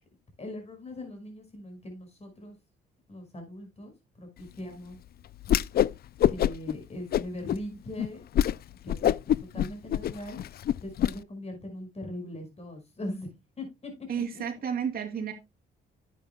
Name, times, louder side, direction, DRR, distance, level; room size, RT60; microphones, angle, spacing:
voice 1, 0.4-2.6 3.1-5.0 6.3-8.2 8.8-10.4 10.8-13.3 13.6-13.9 14.2-14.4, left 1 dB, 30° left, 5.3 m, -40 dB
Whoosh swoosh swish, 5.4-5.9 6.2-6.7 7.1-7.6 8.0-8.1 8.3-8.5 8.9-11.1, left 11 dB, 50° left, 0.4 m, -24 dB
voice 2, 14.1-15.3, right 7 dB, 50° right, 2.7 m, -31 dB
11.5 x 8.4 x 2.2 m
cardioid pair, 90°, 20 cm